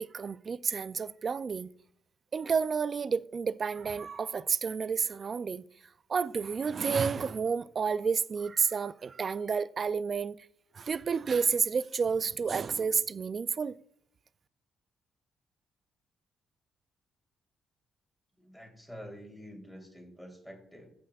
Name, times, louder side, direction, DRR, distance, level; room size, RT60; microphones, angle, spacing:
voice 1, 0.0-1.7 2.3-5.6 6.1-10.4 10.7-13.8, right 5 dB, 45° right, 0.3 m, -30 dB
voice 2, 18.4-20.9, equal, 5° left, 3.4 m, -48 dB
15.5 x 6.0 x 2.4 m
cardioid pair, 90°, 0 cm